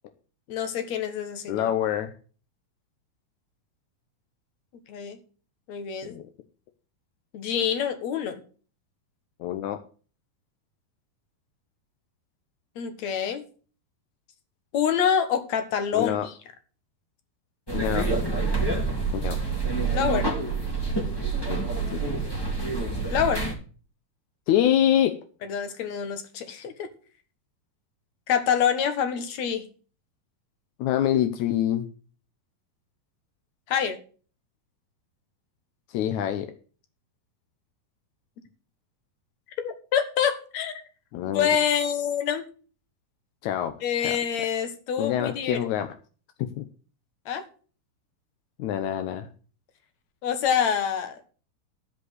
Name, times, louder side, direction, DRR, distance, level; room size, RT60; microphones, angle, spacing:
voice 1, 0.5-1.7 4.9-5.2 5.7-6.2 7.3-8.4 12.8-13.4 14.7-16.3 19.9-20.3 23.1-23.4 25.4-26.9 28.3-29.7 33.7-34.0 39.6-40.8 41.2-42.5 43.8-45.6 47.3-47.4 50.2-51.2, left 8 dB, 55° left, 8 dB, 2.4 m, -26 dB
voice 2, 1.5-2.1 6.0-6.2 9.4-9.8 15.9-16.3 17.7-18.1 19.1-19.4 21.5-21.6 21.9-22.0 24.5-25.1 30.8-31.9 35.9-36.5 41.1-41.5 43.4-44.1 45.0-45.9 46.6-46.7 48.6-49.3, left 11 dB, 75° left, 8 dB, 1.8 m, -25 dB
sound 1, 17.7-23.5, right 3 dB, 10° left, 1.8 m, -27 dB
13.0 x 5.2 x 7.9 m, 0.39 s
omnidirectional pair, 4.2 m